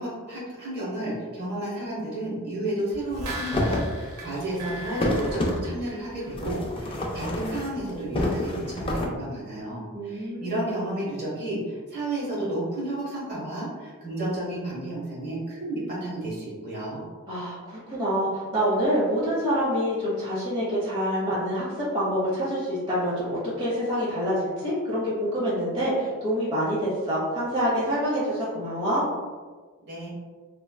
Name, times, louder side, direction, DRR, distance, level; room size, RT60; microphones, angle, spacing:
voice 1, 0.0-17.0 29.9-30.1, right 1 dB, 50° right, -7 dB, 1.0 m, -32 dB
sound 1, 2.9-6.4 6.8-6.9, right 1 dB, 80° right, 0.8 m, -38 dB
sound 2, 3.5-3.9 4.3-5.6 6.3-9.1, left 1 dB, 25° left, 0.3 m, -28 dB
voice 2, 9.9-10.6 17.3-29.0, equal, 25° right, -9 dB, 1.0 m, -26 dB
3.1 x 2.2 x 2.2 m, 1.4 s
head